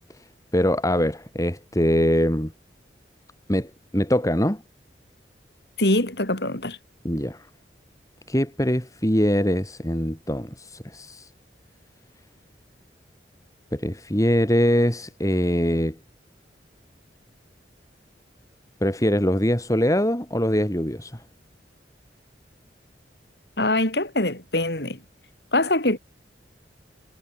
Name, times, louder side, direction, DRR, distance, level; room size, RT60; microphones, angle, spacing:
voice 1, 0.5-2.5 3.5-4.6 7.0-7.5 8.3-11.3 13.7-16.0 18.8-21.2, equal, 20° left, 4.5 m, -23 dB
voice 2, 5.8-6.8 23.6-25.0 25.5-26.0, left 1 dB, 65° left, 6.7 m, -23 dB
head